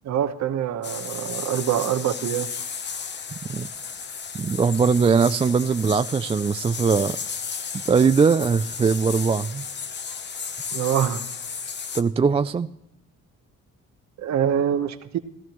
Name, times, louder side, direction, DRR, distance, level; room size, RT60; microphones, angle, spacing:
voice 1, 0.0-2.5 10.7-11.2 14.2-15.2, right 9 dB, 65° right, 10 dB, 1.0 m, -25 dB
sound 1, 0.8-12.0, left 6 dB, 35° left, 0.8 m, -34 dB
voice 2, 4.3-7.2 7.9-9.7 11.9-12.7, right 5 dB, 20° right, 11 dB, 0.3 m, -21 dB
17.0 x 12.5 x 3.0 m, 0.83 s
cardioid pair, 90°, 30 cm